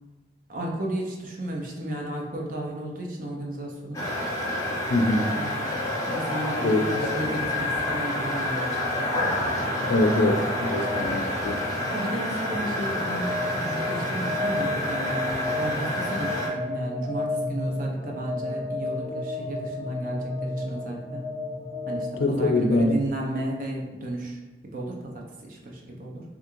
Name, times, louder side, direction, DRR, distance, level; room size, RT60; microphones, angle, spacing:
voice 1, 0.5-4.1 5.3-5.6 6.1-9.1 11.9-21.2 21.9-22.1 22.4-24.4 24.7-25.1 25.4-26.2, right 1 dB, 50° right, -1 dB, 0.5 m, -33 dB
sound 1, 3.9-16.5, left 1 dB, 20° left, 0.6 m, -28 dB
voice 2, 4.9-5.3 6.6-6.8 9.9-11.6 22.2-22.9, left 2 dB, 70° left, 5 dB, 0.4 m, -23 dB
sound 2, 7.8-22.5, left 2 dB, 85° right, 0.9 m, -33 dB
3.5 x 2.4 x 2.9 m, 1.2 s
head